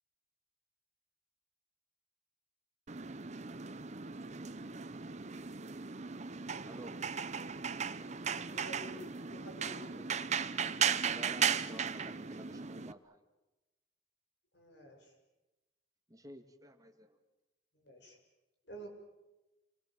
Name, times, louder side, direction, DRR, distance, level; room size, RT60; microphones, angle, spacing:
sound 1, 2.9-12.9, right 7 dB, 40° right, 0.9 m, -36 dB
voice 1, 6.6-7.0 9.8-13.2 16.1-17.2, right 1 dB, 20° right, 6 dB, 2.0 m, -52 dB
voice 2, 8.5-10.2 14.5-15.1 17.7-18.2 18.7-18.9, equal, 70° left, 3 dB, 7.2 m, -50 dB
28.5 x 23.5 x 7.6 m, 1.0 s
head